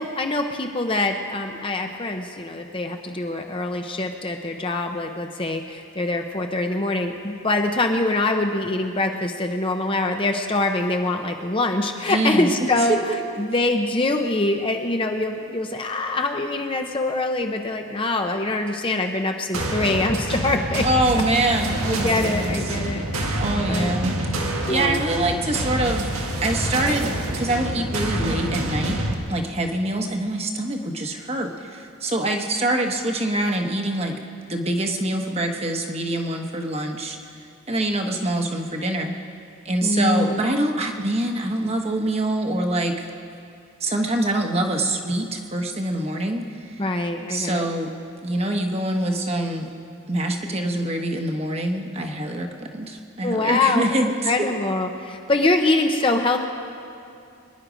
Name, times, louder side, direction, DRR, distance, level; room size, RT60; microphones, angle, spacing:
voice 1, 0.0-20.9 21.1-21.2 21.8-23.0 23.7-23.9 24.7-25.0 39.8-40.4 46.8-47.7 53.2-56.5, left 2 dB, 25° left, 4 dB, 0.7 m, -24 dB
voice 2, 12.1-13.0 20.8-22.8 23.4-24.2 24.7-26.1 26.4-29.0 29.3-34.1 34.5-37.2 37.7-39.1 39.6-43.0 43.8-46.8 47.3-47.9 48.2-49.7 50.1-54.3, right 1 dB, 30° right, 3 dB, 1.2 m, -25 dB
sound 1, 19.5-29.1, right 1 dB, 85° right, 1.7 m, -27 dB
24.0 x 10.5 x 5.1 m, 2.5 s
head